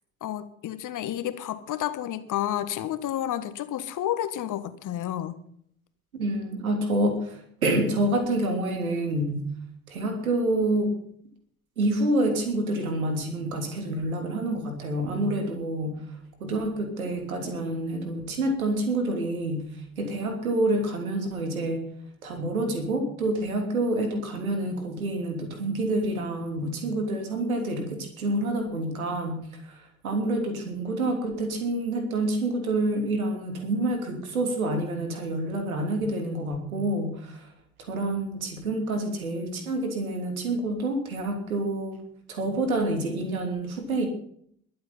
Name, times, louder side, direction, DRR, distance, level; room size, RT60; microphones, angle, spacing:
voice 1, 0.2-5.4, left 12 dB, 45° left, 12 dB, 1.6 m, -30 dB
voice 2, 6.1-9.4 9.9-11.0 11.8-21.9 22.2-37.5 37.8-42.0 42.3-44.1, right 1 dB, 80° right, 5 dB, 3.2 m, -28 dB
21.5 x 7.7 x 5.6 m, 0.64 s
figure-of-eight pair, 55°, 42 cm